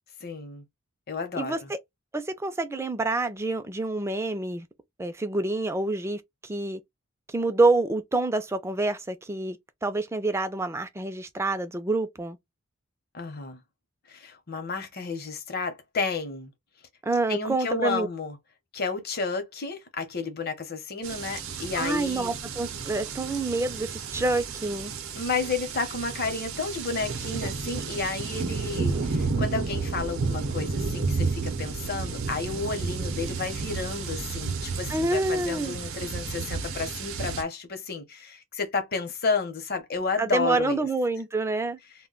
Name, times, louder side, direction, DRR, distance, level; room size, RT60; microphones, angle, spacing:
voice 1, 0.2-0.6 1.1-1.7 13.1-13.6 14.1-16.5 17.3-18.4 18.7-22.3 25.2-40.9, left 4 dB, 45° left, 0.7 m, -31 dB
voice 2, 1.4-1.8 2.1-4.7 5.0-6.8 7.3-9.6 9.8-12.4 17.0-18.1 21.8-24.9 34.9-35.8 40.2-41.8, right 2 dB, 15° right, 0.3 m, -27 dB
sound 1, 21.0-37.4, right 4 dB, 75° right, 0.6 m, -32 dB
2.2 x 2.1 x 3.6 m
head